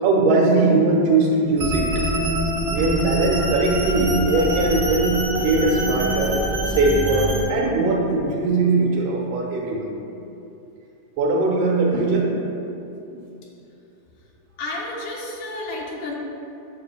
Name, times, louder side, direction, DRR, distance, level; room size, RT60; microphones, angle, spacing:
voice 1, 0.0-1.9 2.7-9.9 11.2-12.3, right 3 dB, 80° right, -3 dB, 2.5 m, -20 dB
sound 1, 1.6-7.4, right 1 dB, 40° right, 1.1 m, -24 dB
voice 2, 14.6-16.1, left 2 dB, 85° left, -3 dB, 2.5 m, -31 dB
9.3 x 6.4 x 2.2 m, 2.8 s
omnidirectional pair, 3.6 m